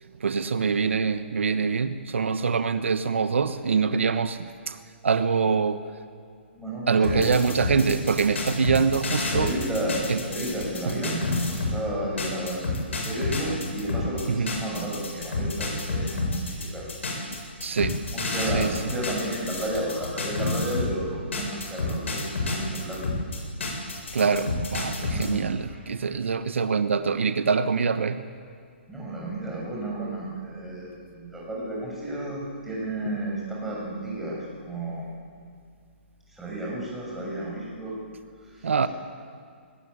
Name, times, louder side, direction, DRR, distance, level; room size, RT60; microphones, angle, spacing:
voice 1, 0.2-4.8 5.0-5.8 6.9-9.5 10.1-10.2 10.9-11.0 14.3-14.5 17.3-18.0 18.5-18.8 24.1-28.2 38.6-38.9, right 5 dB, 80° right, 10 dB, 1.2 m, -24 dB
voice 2, 6.5-7.3 9.3-16.9 18.1-23.1 25.0-25.8 26.1-26.2 28.9-35.1 36.3-38.0 38.4-38.9, right 1 dB, 5° right, -5 dB, 7.0 m, -32 dB
sound 1, 7.0-11.8 12.2-21.0 21.3-25.3, left 3 dB, 75° left, 7.8 m, -29 dB
21.0 x 19.5 x 9.8 m, 2.2 s
hypercardioid pair, 160°, 7 cm